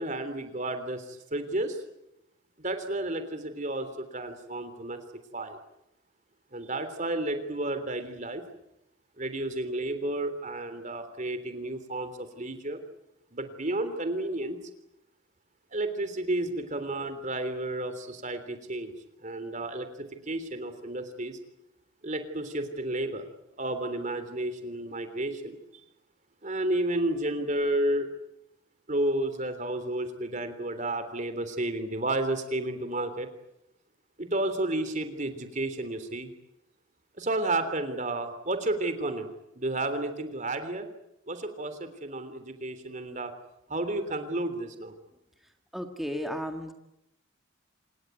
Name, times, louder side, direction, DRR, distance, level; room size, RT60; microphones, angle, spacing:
voice 1, 0.0-1.8 2.6-5.0 5.3-5.6 6.5-8.4 9.2-12.8 13.3-14.6 15.7-18.9 19.2-21.4 22.0-23.2 23.6-25.6 26.4-28.1 28.9-33.3 34.2-36.3 37.2-39.3 39.5-40.9 41.3-43.3 43.7-45.0, right 1 dB, 35° right, 9 dB, 3.3 m, -31 dB
voice 2, 45.7-46.7, equal, ahead, 4 dB, 2.0 m, -33 dB
27.0 x 20.0 x 9.6 m, 0.84 s
head